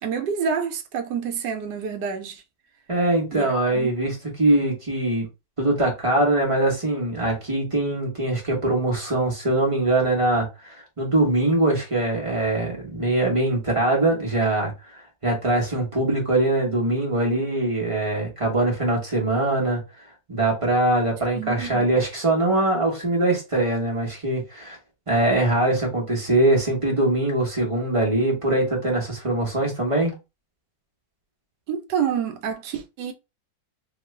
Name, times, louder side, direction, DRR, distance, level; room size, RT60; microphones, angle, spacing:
voice 1, 0.0-2.4 3.3-3.9 21.3-21.9 31.7-33.1, right 7 dB, 70° right, 1.1 m, -28 dB
voice 2, 2.9-5.3 5.6-19.8 20.3-24.8 25.1-30.1, right 2 dB, 30° right, 0.6 m, -22 dB
3.0 x 2.3 x 3.1 m
omnidirectional pair, 2.0 m